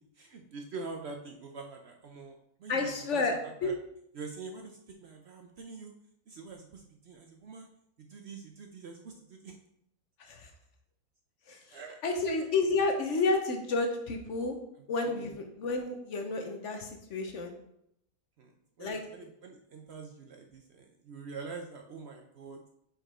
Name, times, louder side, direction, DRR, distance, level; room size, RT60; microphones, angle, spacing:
voice 1, 0.2-3.8 4.1-5.9 6.3-7.7 8.0-9.6 11.7-12.4 15.0-15.2 18.4-22.7, right 4 dB, 60° right, 3 dB, 0.7 m, -45 dB
voice 2, 2.7-3.7 10.2-10.5 11.5-14.5 14.9-17.5 18.8-19.0, left 3 dB, 60° left, 4 dB, 1.1 m, -31 dB
5.2 x 4.9 x 4.3 m, 0.76 s
omnidirectional pair, 1.5 m